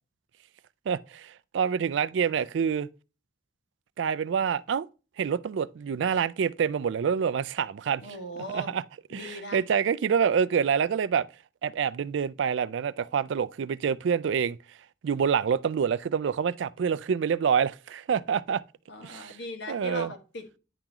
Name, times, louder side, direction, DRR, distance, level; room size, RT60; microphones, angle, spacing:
voice 1, 0.9-2.9 4.0-4.9 5.2-8.0 8.5-8.8 9.1-11.3 11.6-14.6 15.0-18.6 19.0-19.3 19.7-20.1, right 7 dB, 65° right, 0.3 m, -27 dB
voice 2, 8.0-8.7 9.1-9.6 18.9-20.6, equal, 65° left, 1.4 m, -39 dB
9.9 x 3.8 x 2.9 m
head